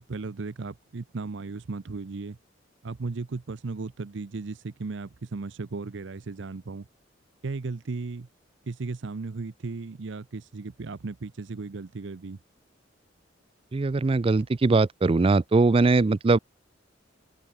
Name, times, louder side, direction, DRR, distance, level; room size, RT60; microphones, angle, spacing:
voice 1, 0.0-2.4 2.8-6.9 7.4-8.3 8.7-12.4 14.4-14.5, right 3 dB, 65° right, 0.6 m, -36 dB
voice 2, 13.7-16.4, right 3 dB, 30° right, 0.4 m, -21 dB
open air
head